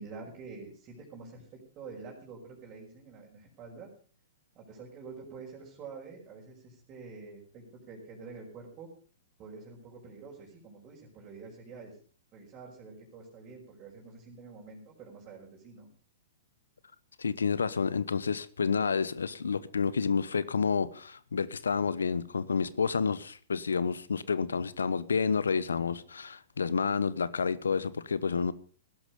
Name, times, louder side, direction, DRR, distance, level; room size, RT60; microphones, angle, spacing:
voice 1, 0.0-3.9 4.5-8.9 9.4-12.0 12.3-15.9, right 4 dB, 30° right, -3 dB, 5.5 m, -47 dB
voice 2, 17.2-28.5, left 5 dB, 80° left, 17 dB, 1.0 m, -29 dB
16.5 x 12.0 x 5.3 m, 0.42 s
hypercardioid pair, 115°, 0 cm